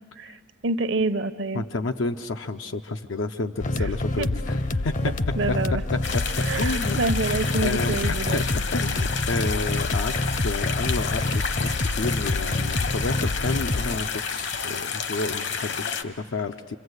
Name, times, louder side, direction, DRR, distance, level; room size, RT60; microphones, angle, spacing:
voice 1, 0.2-1.6 3.8-3.9 4.2-4.3 5.0-5.8 6.4-8.4, right 3 dB, 70° right, 11 dB, 0.8 m, -28 dB
voice 2, 1.5-5.1 6.1-6.2 6.6-7.0 7.6-10.1 10.4-16.8, left 3 dB, 90° left, 5 dB, 0.6 m, -30 dB
sound 1, 3.6-14.0, left 2 dB, 45° left, 0.6 m, -27 dB
sound 2, 6.0-16.0, left 6 dB, 65° left, 1.0 m, -30 dB
26.0 x 26.0 x 8.1 m, 2.1 s
head